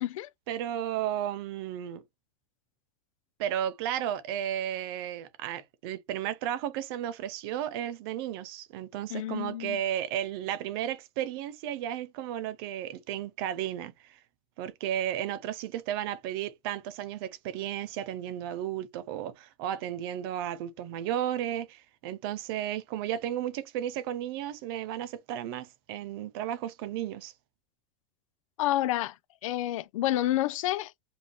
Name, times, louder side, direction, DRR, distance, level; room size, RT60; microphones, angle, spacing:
voice 1, 0.5-2.0 3.4-14.2 14.6-27.3, right 11 dB, 35° right, 0.5 m, -34 dB
voice 2, 9.1-9.8 28.6-29.1 29.4-30.9, left 14 dB, 55° left, 0.4 m, -29 dB
5.1 x 2.7 x 2.9 m
supercardioid pair, 180°, 20 cm